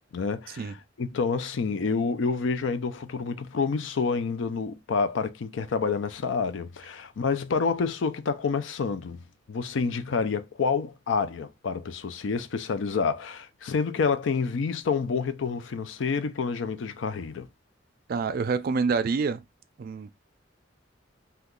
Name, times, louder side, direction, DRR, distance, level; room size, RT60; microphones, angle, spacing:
voice 1, 0.1-9.2 9.5-17.5, left 5 dB, 75° left, 0.4 m, -28 dB
voice 2, 18.1-19.4 19.8-20.1, right 5 dB, 50° right, 0.4 m, -27 dB
2.8 x 2.3 x 3.6 m
head